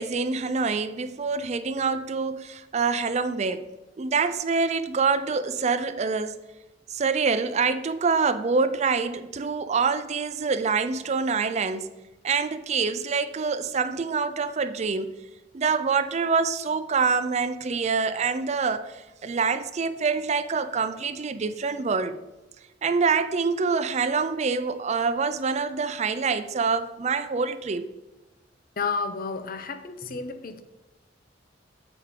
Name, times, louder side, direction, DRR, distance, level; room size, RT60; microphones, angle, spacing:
voice 1, 0.0-3.6 4.0-6.4 6.9-11.9 12.2-15.1 15.5-22.2 22.8-27.9, right 5 dB, 35° right, 0.4 m, -26 dB
voice 2, 28.8-30.6, left 4 dB, 50° left, 0.6 m, -31 dB
7.3 x 4.9 x 5.0 m
head